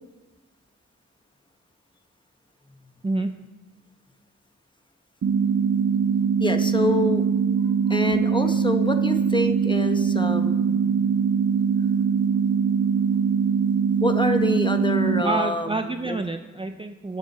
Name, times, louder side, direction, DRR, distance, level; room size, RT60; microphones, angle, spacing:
sound 1, 5.2-15.2, right 6 dB, 60° right, 0.6 m, -22 dB
voice 1, 6.4-7.2 7.9-10.8 14.0-16.2, left 1 dB, 15° left, 7 dB, 1.1 m, -26 dB
voice 2, 15.2-17.2, right 2 dB, 20° right, 7 dB, 0.5 m, -28 dB
21.0 x 7.3 x 4.2 m, 1.2 s
cardioid pair, 75°, 30 cm